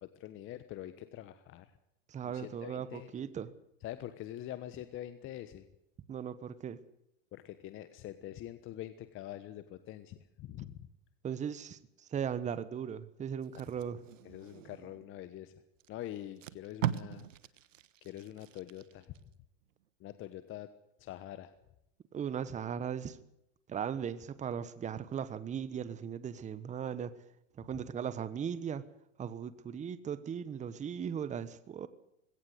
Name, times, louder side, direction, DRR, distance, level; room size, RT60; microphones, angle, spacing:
voice 1, 0.0-1.7 2.2-3.1 3.8-5.7 7.3-10.9 13.5-13.7 14.2-15.5 15.9-17.3 18.0-19.1 20.0-20.7 21.0-21.5, left 13 dB, 35° left, 1.3 m, -45 dB
voice 2, 2.1-3.5 6.1-6.8 11.2-14.0 22.1-23.2 23.7-27.1 27.6-28.8 29.2-31.9, right 8 dB, 20° right, 1.2 m, -38 dB
Packing tape duct tape, 13.4-15.1 15.8-15.9 16.2-19.2 19.6-19.8, right 11 dB, 85° right, 1.3 m, -40 dB
20.0 x 17.5 x 8.0 m
hypercardioid pair, 125°, 37 cm